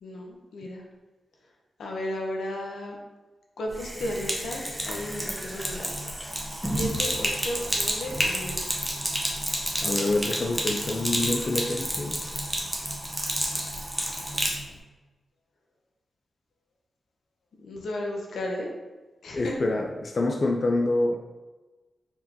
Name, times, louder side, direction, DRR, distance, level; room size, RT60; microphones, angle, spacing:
voice 1, 0.0-0.8 1.8-3.0 3.6-5.9 6.7-8.9 17.6-18.7 19.2-19.5, left 1 dB, 90° left, -1 dB, 0.8 m, -34 dB
Sink (filling or washing), 3.7-14.6, right 1 dB, 5° right, 0.8 m, -30 dB
voice 2, 9.8-12.2 19.3-21.2, left 2 dB, 45° left, 2 dB, 0.3 m, -26 dB
4.6 x 3.7 x 2.7 m, 1.2 s
wide cardioid pair, 100°, 0 cm